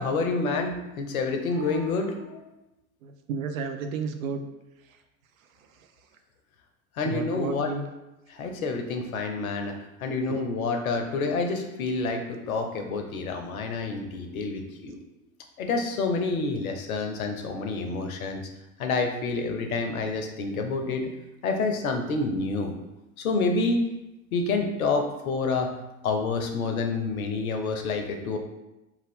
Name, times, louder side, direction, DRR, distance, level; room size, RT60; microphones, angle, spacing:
voice 1, 0.0-2.5 7.0-7.7 8.3-9.7 10.0-15.0 15.6-18.4 18.8-21.1 21.4-22.7 23.2-23.8 24.3-25.7 26.0-28.4, left 3 dB, 75° left, 4 dB, 0.6 m, -28 dB
voice 2, 3.0-4.4 7.0-7.8 10.3-10.4, right 5 dB, 70° right, 6 dB, 0.5 m, -32 dB
2.6 x 2.4 x 3.4 m, 0.95 s
figure-of-eight pair, 70°, 43 cm